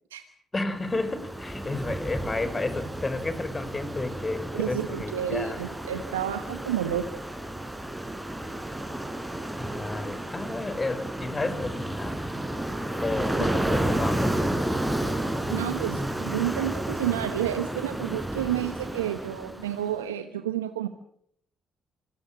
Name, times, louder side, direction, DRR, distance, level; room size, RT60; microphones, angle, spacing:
voice 1, 0.5-5.6 9.6-12.2 13.0-14.7, left 2 dB, 30° left, 11 dB, 5.3 m, -32 dB
Ocean, 0.7-19.9, right 1 dB, 10° right, 5.2 m, -31 dB
voice 2, 4.5-7.1 13.4-13.5 15.5-20.9, right 11 dB, 90° right, 9 dB, 1.1 m, -30 dB
26.0 x 21.0 x 7.5 m, 0.68 s
hypercardioid pair, 45°, 0 cm